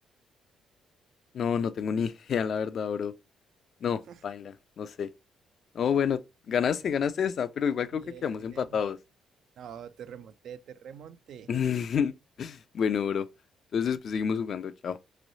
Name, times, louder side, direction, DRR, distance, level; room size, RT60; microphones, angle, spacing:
voice 1, 1.3-3.1 3.8-5.1 5.7-6.2 6.5-9.0 11.5-12.1 12.4-13.3 13.7-15.0, left 7 dB, 60° left, 0.3 m, -29 dB
voice 2, 7.9-8.8 9.6-11.5, right 8 dB, 70° right, 0.3 m, -45 dB
3.1 x 3.0 x 2.6 m
cardioid pair, 90°, 0 cm